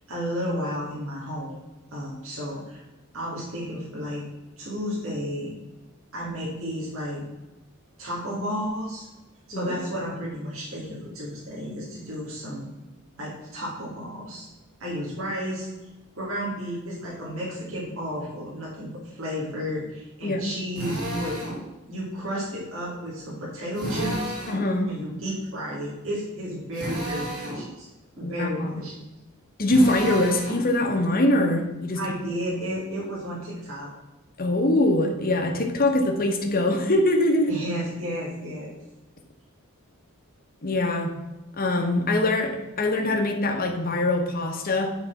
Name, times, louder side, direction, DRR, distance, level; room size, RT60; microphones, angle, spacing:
voice 1, 0.1-1.6 1.9-2.8 3.1-4.2 4.6-5.5 6.1-7.2 8.0-9.1 9.5-12.7 13.2-14.5 14.8-15.7 16.1-21.4 21.9-24.3 24.9-27.9 28.2-28.9 31.9-33.9 37.5-38.8, equal, 65° right, -6 dB, 2.4 m, -32 dB
Drill, 20.7-21.6 23.7-24.6 26.7-27.6 29.6-30.6, right 1 dB, 40° right, 3.1 m, -31 dB
voice 2, 24.5-24.9 28.2-28.7 29.6-32.0 34.4-37.5 40.6-41.2 41.6-44.9, left 1 dB, 40° left, 3 dB, 1.2 m, -23 dB
8.5 x 4.3 x 5.8 m, 1.1 s
head